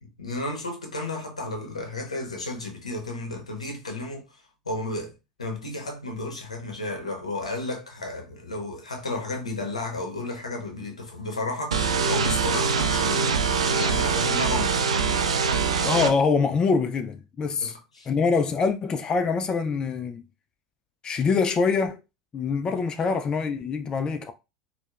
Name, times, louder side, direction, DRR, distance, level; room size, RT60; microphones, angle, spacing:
voice 1, 0.0-4.3 4.7-5.1 5.4-11.8 12.1-13.3 13.7-14.8 17.6-18.1, left 2 dB, 80° left, 0.7 m, -33 dB
sound 1, 11.7-16.1, right 5 dB, 75° right, 0.4 m, -23 dB
voice 2, 15.8-17.8 18.1-20.2 21.0-22.0 22.3-24.3, left 5 dB, 25° left, 0.3 m, -24 dB
4.3 x 2.1 x 2.3 m
figure-of-eight pair, 75°, 3 cm